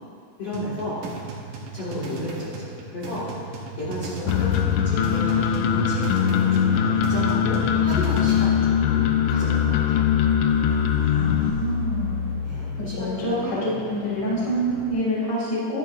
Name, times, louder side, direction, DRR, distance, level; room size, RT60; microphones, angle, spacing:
voice 1, 0.4-1.0 1.7-10.1 12.4-13.6 13.8-14.3, left 1 dB, 55° left, -11 dB, 1.8 m, -33 dB
sound 1, 0.5-8.5, right 3 dB, 90° right, 1.9 m, -37 dB
sound 2, 3.8-14.9, equal, 45° right, 3.7 m, -34 dB
sound 3, 4.3-11.5, left 9 dB, 85° left, 2.8 m, -21 dB
voice 2, 11.1-12.6 12.9-15.8, equal, 25° left, -7 dB, 1.0 m, -27 dB
12.5 x 11.0 x 2.5 m, 2.3 s
omnidirectional pair, 5.4 m